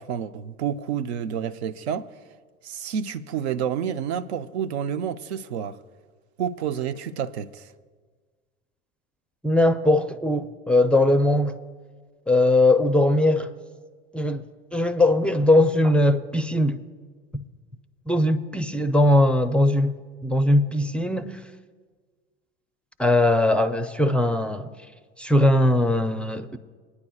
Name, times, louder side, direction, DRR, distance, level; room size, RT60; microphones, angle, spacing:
voice 1, 0.0-2.1 2.6-5.8 6.4-7.7, right 8 dB, 80° right, 0.6 m, -29 dB
voice 2, 9.4-11.6 12.3-13.5 14.1-14.4 14.7-16.8 17.3-17.4 18.1-20.0 20.2-21.4 23.0-24.7 25.2-26.6, left 1 dB, 5° left, 0.4 m, -20 dB
22.5 x 9.7 x 2.3 m
hypercardioid pair, 80°, 32 cm